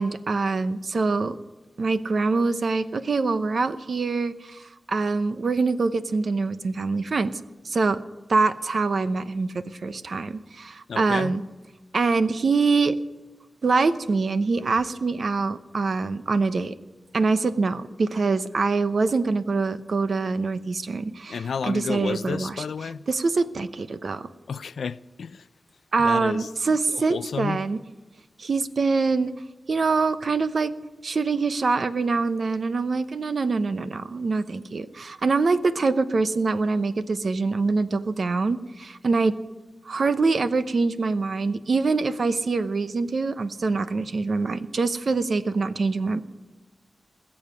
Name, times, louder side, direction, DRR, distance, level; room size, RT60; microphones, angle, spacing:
voice 1, 0.0-1.4 1.8-7.3 7.6-8.0 8.3-11.4 11.9-13.0 13.6-16.8 17.1-22.6 23.1-24.3 25.9-27.8 28.4-29.3 29.7-30.7 31.0-39.3 39.9-46.2, right 4 dB, 65° right, 0.8 m, -24 dB
voice 2, 10.9-11.3 21.3-23.0 24.5-25.5 26.0-26.5 26.9-27.6, left 6 dB, 90° left, 0.4 m, -31 dB
20.0 x 7.2 x 9.5 m
wide cardioid pair, 75°, 0 cm